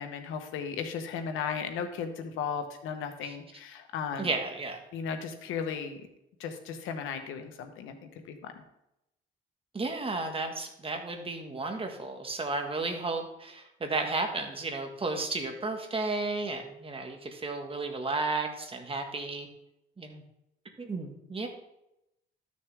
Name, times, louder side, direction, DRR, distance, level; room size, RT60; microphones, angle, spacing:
voice 1, 0.0-4.3 4.9-6.0 6.4-8.5, left 6 dB, 90° left, 7 dB, 1.2 m, -36 dB
voice 2, 4.2-4.8 9.7-19.5 20.0-20.2 20.8-21.5, right 3 dB, 25° right, 4 dB, 1.7 m, -33 dB
13.0 x 6.5 x 3.5 m, 0.87 s
cardioid pair, 90°, 20 cm